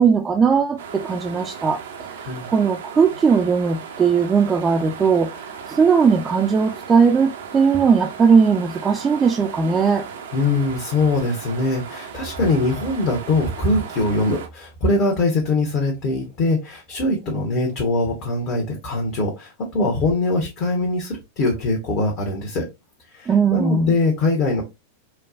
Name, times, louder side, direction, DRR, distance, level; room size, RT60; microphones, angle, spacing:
voice 1, 0.0-1.8 2.5-5.3 5.7-10.0 23.3-23.9, right 6 dB, 20° right, 0.5 m, -18 dB
sound 1, 0.8-14.5, right 6 dB, 60° right, 0.6 m, -37 dB
voice 2, 10.3-22.6 23.1-24.6, left 2 dB, 40° left, 1.1 m, -22 dB
4.5 x 2.2 x 2.6 m
figure-of-eight pair, 90°, 0 cm